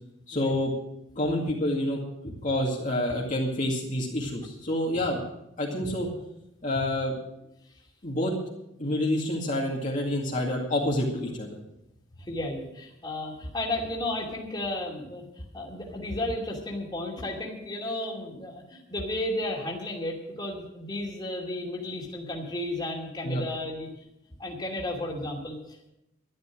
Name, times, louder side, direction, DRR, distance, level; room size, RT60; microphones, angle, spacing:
voice 1, 0.3-0.7 1.2-2.0 2.2-5.2 5.6-6.1 6.6-7.1 8.0-8.3 8.8-11.6 23.2-23.4, left 1 dB, 40° left, -3 dB, 2.2 m, -28 dB
voice 2, 12.2-15.2 15.5-23.9 24.4-25.9, left 1 dB, 20° left, -1 dB, 2.5 m, -33 dB
12.5 x 12.0 x 6.2 m, 0.85 s
head